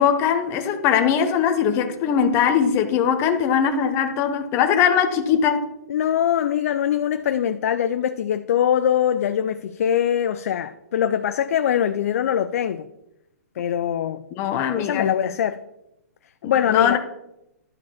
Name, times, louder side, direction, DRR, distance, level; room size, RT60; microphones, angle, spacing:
voice 1, 0.0-5.6 14.4-15.1 16.4-17.0, left 8 dB, 30° left, 1.0 m, -20 dB
voice 2, 5.9-12.9 13.6-14.2 14.8-15.6 16.4-17.0, left 9 dB, 60° left, 0.5 m, -22 dB
11.5 x 5.0 x 5.7 m
hypercardioid pair, 135°, 9 cm